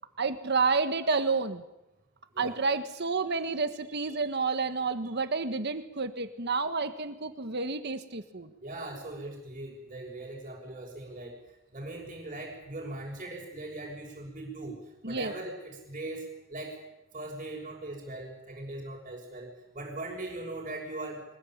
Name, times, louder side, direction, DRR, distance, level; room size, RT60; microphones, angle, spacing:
voice 1, 0.2-1.6 2.4-8.5 15.0-15.3, right 4 dB, 55° right, 9 dB, 1.6 m, -30 dB
voice 2, 8.6-16.8 17.1-21.2, right 2 dB, 35° right, -5 dB, 5.9 m, -40 dB
24.5 x 21.5 x 8.9 m, 0.92 s
head